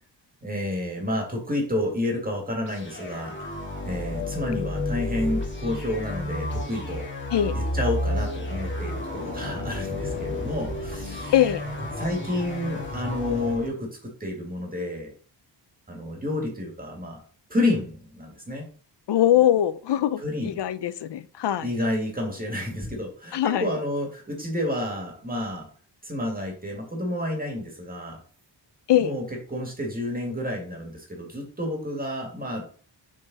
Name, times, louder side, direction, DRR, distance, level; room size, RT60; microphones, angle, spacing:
voice 1, 0.4-3.5 3.8-7.1 7.6-11.3 12.0-15.1 15.9-17.2 17.5-18.7 20.2-20.5 21.6-25.7 26.0-28.2 29.0-32.6, left 1 dB, 20° right, 2.0 m, -30 dB
sound 1, 2.6-13.7, left 1 dB, 25° left, 1.9 m, -31 dB
voice 2, 11.3-11.6 19.1-21.7 23.3-23.7 28.9-29.1, left 11 dB, 70° left, 0.6 m, -22 dB
7.5 x 3.8 x 4.0 m
wide cardioid pair, 125°, 43 cm